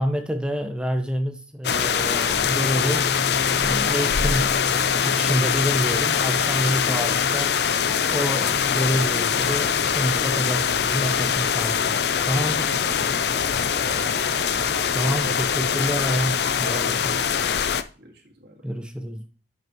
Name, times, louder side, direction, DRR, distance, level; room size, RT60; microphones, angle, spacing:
voice 1, 0.0-3.1 3.6-4.6 5.0-7.6 8.1-12.7 14.9-17.4 18.6-19.3, equal, 5° right, 0.7 m, -28 dB
sound 1, 1.6-17.8, left 7 dB, 60° left, 0.5 m, -23 dB
sound 2, 2.4-16.0, left 1 dB, 40° left, 4.6 m, -38 dB
voice 2, 12.6-13.5 13.9-14.7 15.1-15.7 17.7-18.7, right 2 dB, 60° right, 1.9 m, -43 dB
11.5 x 5.8 x 3.0 m
head